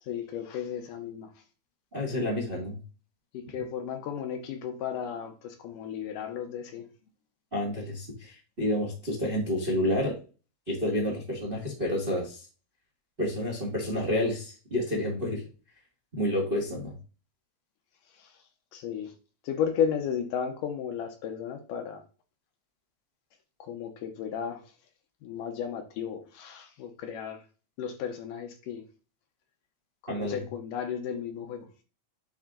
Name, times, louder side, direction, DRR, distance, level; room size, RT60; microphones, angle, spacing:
voice 1, 0.1-1.3 3.3-6.8 18.7-19.1 19.5-22.0 23.7-24.6 25.2-27.4 27.8-28.8 30.1-31.7, left 8 dB, 75° left, 2.3 m, -34 dB
voice 2, 1.9-2.8 7.5-10.1 10.7-12.4 13.2-15.4 16.1-16.9 30.1-30.5, left 1 dB, 35° right, 0.8 m, -29 dB
8.9 x 3.6 x 3.8 m
omnidirectional pair, 4.2 m